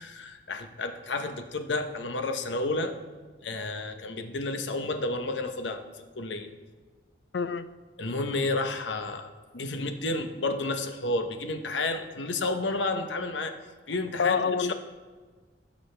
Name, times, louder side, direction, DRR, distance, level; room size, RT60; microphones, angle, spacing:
voice 1, 0.0-3.0 3.4-5.9 6.1-6.5 8.0-13.5 13.9-14.7, left 2 dB, 90° left, 7 dB, 0.9 m, -31 dB
voice 2, 7.3-7.7 14.2-14.7, left 6 dB, 70° left, 12 dB, 0.5 m, -26 dB
16.5 x 6.2 x 3.3 m, 1.4 s
head